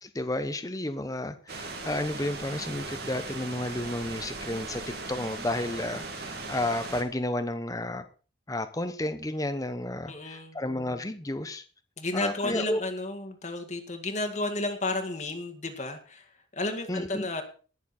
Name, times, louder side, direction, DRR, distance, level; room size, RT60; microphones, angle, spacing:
voice 1, 0.0-4.8 5.1-8.0 8.5-11.6 12.1-12.8 16.9-17.3, left 1 dB, 20° left, 10 dB, 0.9 m, -32 dB
sound 1, 1.5-7.0, right 3 dB, 55° right, 2.5 m, -38 dB
voice 2, 10.0-10.6 12.0-17.4, left 2 dB, 35° left, 5 dB, 1.9 m, -32 dB
19.0 x 7.2 x 4.3 m, 0.37 s
head